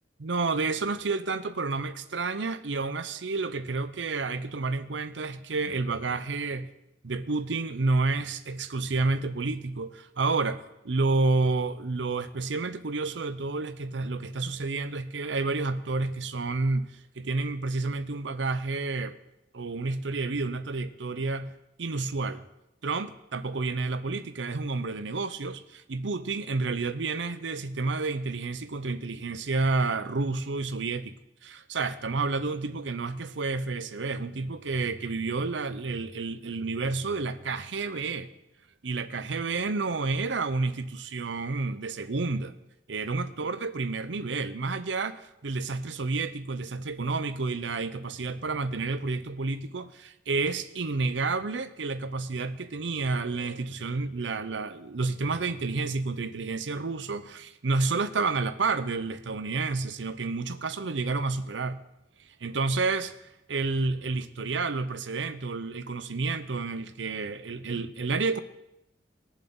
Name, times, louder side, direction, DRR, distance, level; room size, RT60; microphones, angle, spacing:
voice 1, 0.2-6.7 7.0-19.2 19.5-21.5 21.8-22.5 22.8-31.1 31.4-38.3 38.8-42.6 42.9-61.8 62.4-63.1 63.5-68.4, right 3 dB, 75° right, 0.7 m, -30 dB
20.5 x 7.2 x 3.9 m
head